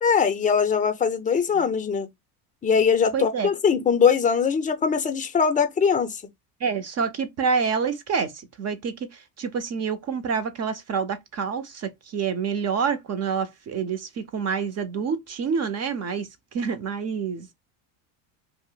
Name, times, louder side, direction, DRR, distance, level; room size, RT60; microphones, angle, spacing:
voice 1, 0.0-2.1 2.6-6.2, left 6 dB, 15° left, 0.5 m, -21 dB
voice 2, 3.1-3.5 6.6-16.3 16.5-17.5, right 6 dB, 35° right, 0.6 m, -27 dB
2.5 x 2.0 x 3.7 m
supercardioid pair, 95°, 48 cm